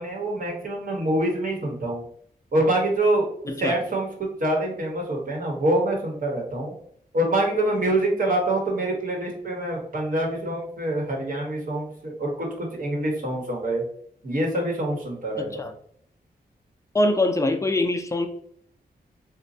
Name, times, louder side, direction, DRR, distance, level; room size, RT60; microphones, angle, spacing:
voice 1, 0.0-2.0 2.5-3.3 3.6-6.7 7.1-13.8 14.2-15.7, right 1 dB, 55° right, -1 dB, 1.0 m, -25 dB
voice 2, 15.4-15.7 16.9-18.3, left 2 dB, 20° left, 6 dB, 0.4 m, -23 dB
4.0 x 2.2 x 2.6 m, 0.64 s
wide cardioid pair, 105°, 17 cm